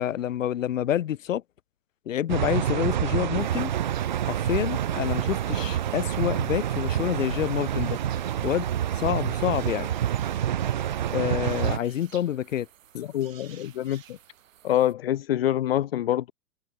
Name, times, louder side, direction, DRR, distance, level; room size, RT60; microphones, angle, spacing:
voice 1, 0.0-1.4 2.1-3.7 4.2-8.0 8.4-8.7 9.0-9.9 11.1-12.7, left 11 dB, 55° left, 1.4 m, -27 dB
sound 1, 2.3-11.8, right 10 dB, 30° right, 0.7 m, -27 dB
sound 2, 3.4-14.9, right 10 dB, 55° right, 7.7 m, -53 dB
voice 2, 12.9-14.2 14.6-16.3, left 12 dB, 40° left, 1.1 m, -26 dB
hypercardioid pair, 175°, 46 cm